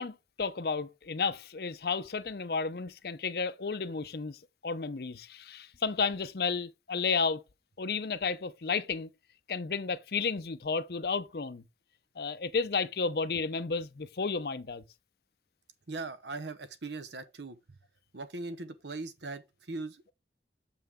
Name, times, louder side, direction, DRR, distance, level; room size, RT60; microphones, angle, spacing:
voice 1, 0.0-7.4 7.8-9.1 9.5-11.6 12.2-14.8, left 5 dB, 60° left, 0.6 m, -32 dB
voice 2, 15.9-17.6 18.1-20.1, right 3 dB, 80° right, 0.9 m, -40 dB
6.9 x 5.6 x 3.6 m
head